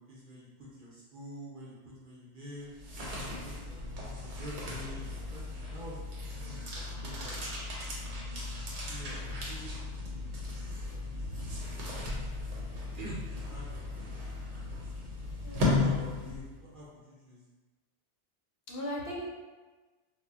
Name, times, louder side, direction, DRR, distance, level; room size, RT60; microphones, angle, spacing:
voice 1, 0.0-2.7 3.4-8.1 8.9-11.2 12.9-13.8 14.5-15.1 15.8-17.4, equal, 55° right, -6 dB, 0.6 m, -48 dB
sound 1, 2.6-16.7, left 2 dB, 80° right, 1.0 m, -36 dB
voice 2, 11.2-11.6 15.4-15.7 18.7-19.3, equal, 65° left, -3 dB, 0.7 m, -39 dB
2.1 x 2.0 x 3.4 m, 1.3 s
omnidirectional pair, 1.2 m